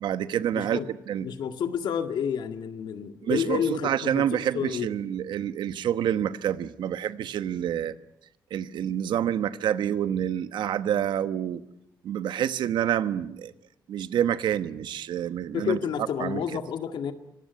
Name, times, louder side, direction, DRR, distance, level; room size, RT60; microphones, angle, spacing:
voice 1, 0.0-0.8 1.1-1.3 3.2-7.9 8.5-11.6 12.0-13.5 13.9-15.8 16.2-16.6, right 10 dB, 85° right, 13 dB, 1.1 m, -28 dB
voice 2, 0.5-0.9 1.2-4.9 15.5-17.1, left 8 dB, 80° left, 8 dB, 2.0 m, -30 dB
24.5 x 19.0 x 9.5 m, 0.83 s
cardioid pair, 115°, 8 cm